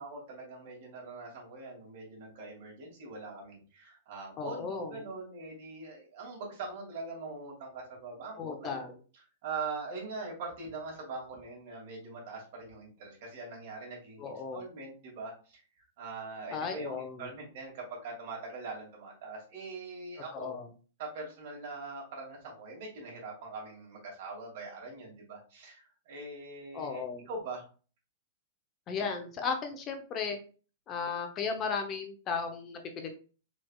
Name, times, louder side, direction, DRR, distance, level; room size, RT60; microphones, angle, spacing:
voice 1, 0.0-20.5 21.0-27.7, right 3 dB, 55° right, -2 dB, 2.5 m, -42 dB
voice 2, 4.4-5.1 8.4-8.9 14.2-14.6 16.5-17.3 20.3-20.6 26.7-27.3 28.9-30.4 30.9-33.1, left 5 dB, 30° left, 4 dB, 0.8 m, -35 dB
4.5 x 4.3 x 2.4 m, 0.37 s
hypercardioid pair, 135°, 0 cm